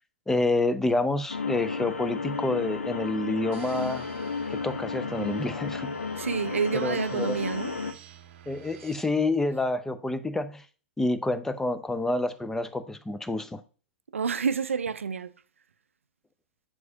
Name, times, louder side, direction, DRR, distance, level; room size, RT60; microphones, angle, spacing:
voice 1, 0.3-4.1 4.5-5.9 6.7-7.4 8.5-10.7 11.0-13.6, left 2 dB, 5° left, 0.5 m, -28 dB
sound 1, 1.3-7.9, left 4 dB, 85° left, 0.7 m, -33 dB
sound 2, 3.5-9.0, right 10 dB, 50° right, 0.8 m, -50 dB
voice 2, 6.2-7.8 14.1-15.3, right 6 dB, 80° right, 0.4 m, -29 dB
7.3 x 4.7 x 2.8 m
figure-of-eight pair, 105°, 7 cm